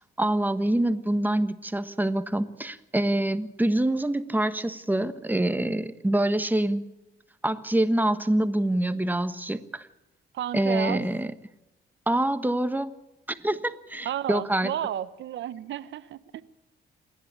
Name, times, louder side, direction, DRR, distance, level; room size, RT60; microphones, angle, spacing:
voice 1, 0.2-6.8 7.4-9.9 10.5-11.3 12.1-12.9 13.3-14.7, right 1 dB, 10° right, 11 dB, 1.3 m, -25 dB
voice 2, 10.3-11.0 14.0-16.4, right 11 dB, 70° right, 15 dB, 1.0 m, -32 dB
28.0 x 11.0 x 8.6 m, 0.99 s
cardioid pair, 90°, 20 cm